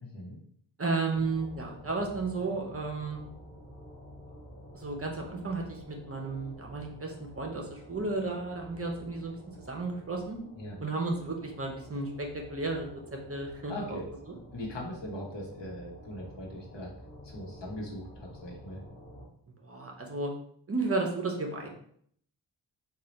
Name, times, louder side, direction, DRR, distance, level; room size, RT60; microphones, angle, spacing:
voice 1, 0.0-0.4 10.6-10.8 13.7-14.1 14.5-16.9 17.2-18.8, left 1 dB, 70° left, -2 dB, 1.1 m, -40 dB
voice 2, 0.8-3.2 4.7-9.4 9.7-10.4 10.8-14.0 19.6-20.3 20.7-21.7, right 3 dB, 30° right, 1 dB, 0.6 m, -33 dB
sound 1, 1.1-19.3, equal, 20° left, 1.1 m, -50 dB
3.2 x 2.4 x 3.9 m, 0.64 s
wide cardioid pair, 90°, 45 cm